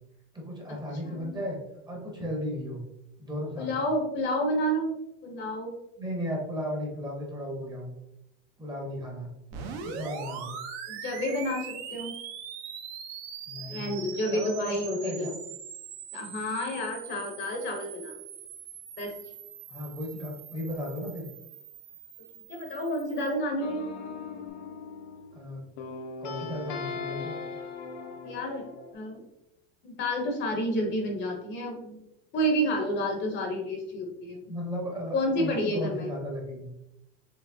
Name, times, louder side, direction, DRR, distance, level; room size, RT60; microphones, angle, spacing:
voice 1, 0.3-1.6 1.9-2.8 3.2-3.9 6.0-7.9 8.6-9.3 9.8-10.5 13.5-14.0 14.3-15.3 19.7-21.3 25.3-25.6 26.2-27.3 34.4-36.7, equal, 15° right, -1 dB, 0.7 m, -35 dB
voice 2, 1.0-1.4 3.6-4.9 5.2-5.7 9.5-9.9 10.9-12.1 13.7-15.3 16.1-18.2 19.0-19.1 22.5-23.8 28.2-28.7 28.9-29.2 29.8-32.0 32.3-34.4 35.1-36.1, equal, 35° left, 2 dB, 0.7 m, -30 dB
sound 1, 9.5-23.4, right 7 dB, 70° right, 0.7 m, -42 dB
sound 2, 23.6-25.5 25.8-28.9, left 4 dB, 80° left, 0.8 m, -39 dB
4.6 x 3.0 x 2.6 m, 0.86 s
cardioid pair, 155°, 32 cm